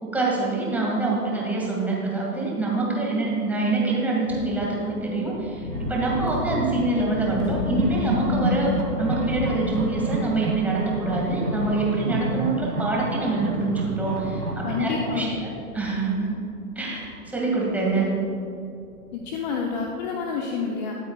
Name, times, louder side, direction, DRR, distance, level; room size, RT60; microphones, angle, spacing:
voice 1, 0.0-16.3 16.8-18.1, right 2 dB, 5° right, -4 dB, 2.1 m, -25 dB
sound 1, 4.2-20.1, left 3 dB, 55° left, 2.8 m, -38 dB
sound 2, 5.7-15.3, right 1 dB, 80° right, 2.1 m, -29 dB
voice 2, 14.6-15.5 19.1-21.0, left 5 dB, 30° left, 1 dB, 0.9 m, -28 dB
21.5 x 8.6 x 2.4 m, 2.7 s
figure-of-eight pair, 120°, 45 cm